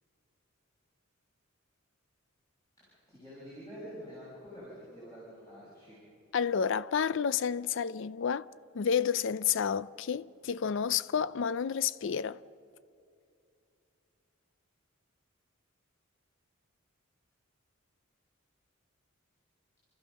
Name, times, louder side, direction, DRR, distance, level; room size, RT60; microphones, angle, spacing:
voice 1, 2.8-6.0, equal, 15° left, 6.5 m, -47 dB
voice 2, 6.3-8.5 8.7-12.4, left 7 dB, 60° left, 0.4 m, -30 dB
29.5 x 14.0 x 6.4 m
head